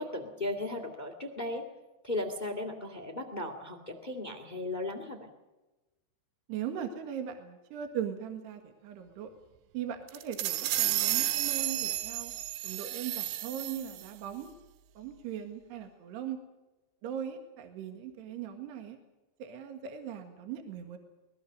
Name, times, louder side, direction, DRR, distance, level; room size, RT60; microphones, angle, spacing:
voice 1, 0.0-1.6 2.0-5.3, left 2 dB, 80° left, 4 dB, 0.4 m, -36 dB
voice 2, 6.5-9.3 9.7-12.3 12.6-14.5 15.0-16.4 17.0-19.0 19.4-21.0, right 9 dB, 70° right, 6 dB, 3.5 m, -39 dB
sound 1, 10.1-14.1, right 13 dB, 85° right, 3.4 m, -32 dB
24.0 x 20.5 x 6.5 m, 1.1 s
omnidirectional pair, 5.4 m